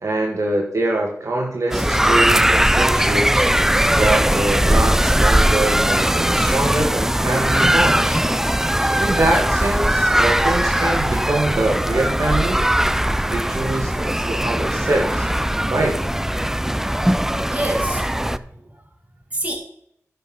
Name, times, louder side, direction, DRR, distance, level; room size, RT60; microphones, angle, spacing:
voice 1, 0.0-3.5 3.9-8.2 8.8-12.6 13.3-15.3 15.7-16.0, right 2 dB, 70° right, -1 dB, 2.0 m, -23 dB
sound 1, 1.7-18.4, right 1 dB, 10° right, 0.5 m, -19 dB
voice 2, 16.9-18.7 19.3-19.6, right 1 dB, 25° right, -1 dB, 3.4 m, -29 dB
10.5 x 5.6 x 6.1 m, 0.73 s
cardioid pair, 45°, 5 cm